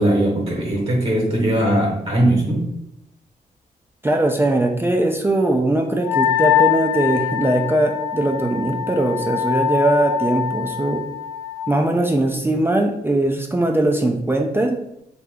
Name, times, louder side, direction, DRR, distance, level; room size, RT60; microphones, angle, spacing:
voice 1, 0.0-2.6, right 1 dB, 40° right, -2 dB, 0.9 m, -19 dB
voice 2, 4.0-11.0 11.7-14.8, right 1 dB, 15° right, 3 dB, 0.3 m, -20 dB
Wind instrument woodwind instrument, 6.0-11.6, left 10 dB, 75° left, 0.4 m, -23 dB
2.8 x 2.2 x 3.4 m, 0.81 s
cardioid pair, 60°, 16 cm